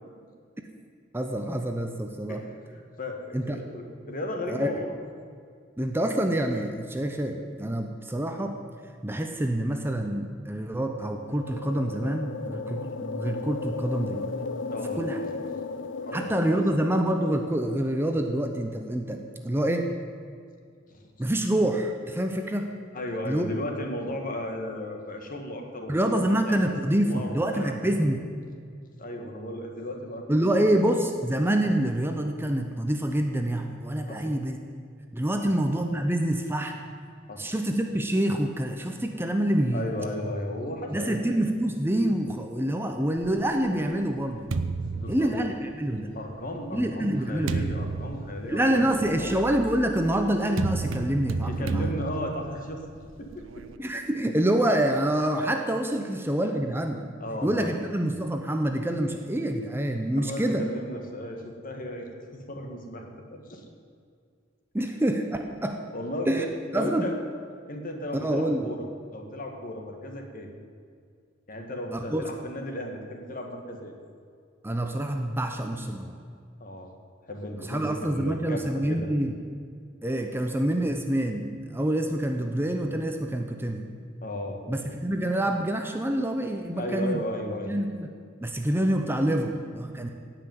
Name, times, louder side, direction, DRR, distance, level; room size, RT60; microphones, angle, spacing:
voice 1, 1.1-2.4 3.3-3.6 4.5-4.7 5.8-8.6 9.0-14.3 15.0-15.2 16.1-19.9 21.2-22.7 23.2-23.5 25.9-28.2 30.3-34.6 35.1-36.8 37.4-39.9 40.9-44.6 45.1-46.2 46.7-47.7 48.5-51.9 53.8-57.0 57.4-60.7 64.7-65.8 66.3-66.5 66.7-67.1 68.1-68.7 71.9-72.2 74.6-76.2 77.6-79.3 80.0-83.9 84.7-87.2 87.7-88.1 88.4-90.1, right 1 dB, 10° right, 5 dB, 0.7 m, -26 dB
voice 2, 3.0-4.9 14.7-15.3 16.0-16.6 20.9-21.1 22.9-26.7 27.1-27.8 29.0-30.5 34.1-34.4 37.3-37.5 39.7-41.2 44.8-45.3 46.1-49.3 51.4-52.8 53.2-53.6 56.0-56.1 57.2-57.7 60.2-63.6 64.8-64.9 65.9-67.1 67.7-68.9 69.1-70.5 71.5-73.9 76.6-76.9 77.3-79.1 84.2-84.6 86.7-87.7, left 1 dB, 45° left, 3 dB, 1.9 m, -35 dB
sound 1, 10.7-18.4, left 4 dB, 65° left, 0.6 m, -36 dB
sound 2, 43.2-46.0 46.7-53.8, right 3 dB, 85° right, 0.7 m, -33 dB
17.0 x 5.9 x 9.3 m, 2.2 s
head